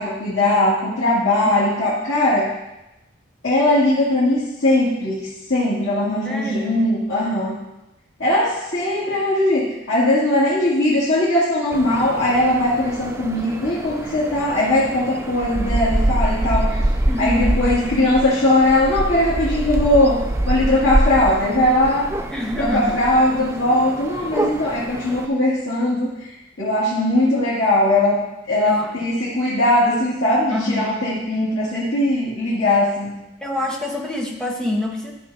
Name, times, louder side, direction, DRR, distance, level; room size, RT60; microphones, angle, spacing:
voice 1, 0.0-2.5 3.4-7.6 8.2-16.8 17.2-20.2 20.5-22.1 22.5-26.1 26.6-28.2 28.5-33.1, left 1 dB, 80° left, -10 dB, 2.3 m, -19 dB
voice 2, 6.2-6.8 17.1-17.6 22.3-23.0 28.6-28.9 30.5-31.1 33.4-35.1, left 1 dB, 5° left, -1 dB, 1.0 m, -26 dB
sound 1, 11.7-25.3, right 1 dB, 15° right, 0.3 m, -25 dB
13.0 x 6.1 x 2.8 m, 0.97 s
head